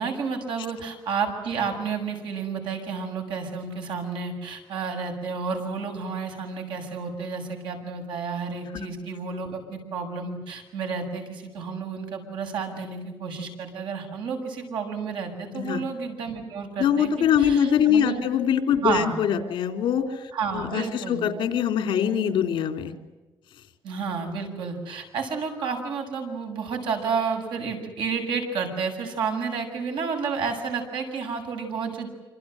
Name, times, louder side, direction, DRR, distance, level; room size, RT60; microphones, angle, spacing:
voice 1, 0.0-18.3 18.8-19.1 20.3-21.2 23.8-32.1, right 5 dB, 65° right, 4 dB, 7.4 m, -31 dB
voice 2, 15.5-15.8 16.8-22.9, left 8 dB, 70° left, 7 dB, 3.4 m, -23 dB
27.5 x 26.5 x 7.9 m, 1.2 s
cardioid pair, 175°, 9 cm